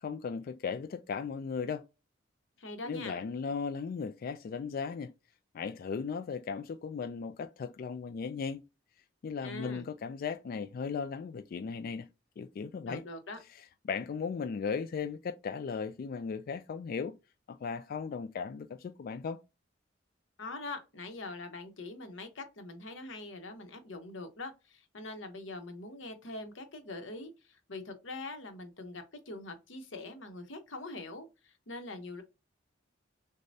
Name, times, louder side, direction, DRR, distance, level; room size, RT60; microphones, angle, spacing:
voice 1, 0.0-1.8 2.8-5.1 5.5-8.6 9.2-12.1 12.4-13.0 13.8-17.1 17.5-19.4, left 5 dB, 50° left, 0.3 m, -36 dB
voice 2, 2.6-3.2 9.4-9.9 12.9-13.4 20.4-32.2, left 2 dB, 85° left, 0.9 m, -43 dB
6.4 x 2.2 x 2.6 m
head